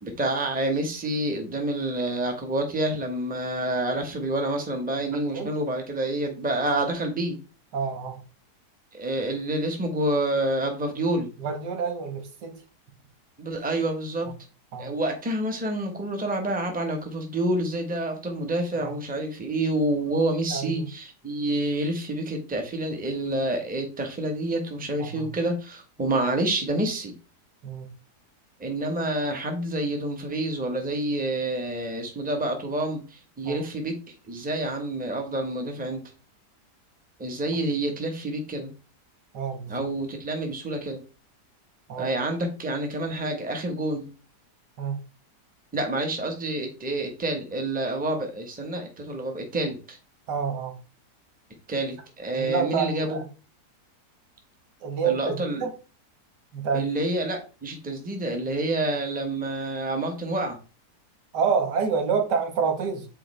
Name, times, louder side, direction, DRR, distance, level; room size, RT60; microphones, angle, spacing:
voice 1, 0.0-7.4 8.9-11.3 13.4-14.3 14.8-27.1 28.6-36.0 37.2-38.7 39.7-41.0 42.0-44.1 45.7-50.0 51.7-53.2 55.0-55.6 56.7-60.6, right 1 dB, 5° right, 4 dB, 0.9 m, -28 dB
voice 2, 5.1-5.5 7.7-8.2 11.4-12.5 14.7-14.9 18.8-19.0 20.5-20.9 25.0-25.3 27.6-27.9 33.5-33.6 39.3-39.9 41.9-42.1 44.8-45.0 50.3-50.7 52.4-53.3 54.8-55.7 56.5-56.8 61.3-63.1, right 6 dB, 85° right, 5 dB, 1.8 m, -28 dB
8.3 x 4.2 x 3.2 m, 0.34 s
omnidirectional pair, 1.8 m